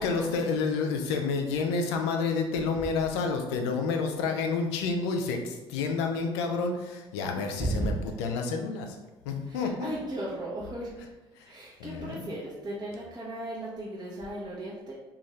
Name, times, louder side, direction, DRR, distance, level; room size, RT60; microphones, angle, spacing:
voice 1, 0.0-9.0 9.3-9.9 11.4-11.5 11.8-12.3, left 4 dB, 80° left, 4 dB, 0.4 m, -29 dB
voice 2, 7.6-7.9 9.5-10.9 11.5-14.9, right 1 dB, 30° right, -6 dB, 0.8 m, -35 dB
2.6 x 2.4 x 3.1 m, 1.1 s
hypercardioid pair, 55°, 14 cm